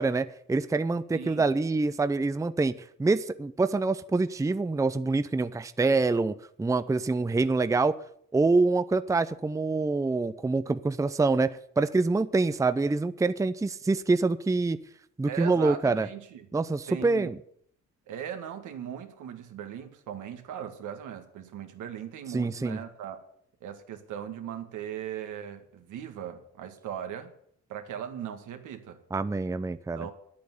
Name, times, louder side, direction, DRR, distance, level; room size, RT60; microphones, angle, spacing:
voice 1, 0.0-2.7 3.0-8.0 8.3-14.8 15.2-16.1 16.5-17.4 22.3-22.8 29.1-30.1, right 3 dB, 10° right, 13 dB, 0.6 m, -26 dB
voice 2, 1.1-1.5 15.3-16.5 16.9-17.3 18.1-23.2 23.6-27.3 27.7-29.0 29.9-30.1, right 9 dB, 80° right, 6 dB, 2.0 m, -39 dB
10.5 x 8.6 x 9.6 m, 0.65 s
cardioid pair, 90°, 30 cm